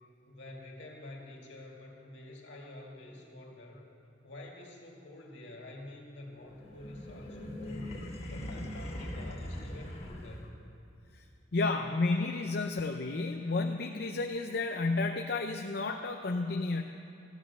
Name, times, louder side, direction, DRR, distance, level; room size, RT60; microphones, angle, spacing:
voice 1, 0.3-3.8 4.2-8.0 8.3-10.6, left 1 dB, 75° left, -1 dB, 2.2 m, -48 dB
sound 1, 6.5-10.7, left 1 dB, 35° left, 1.4 m, -41 dB
voice 2, 11.5-16.8, left 3 dB, 55° left, 4 dB, 0.6 m, -31 dB
14.5 x 10.0 x 6.8 m, 2.8 s
head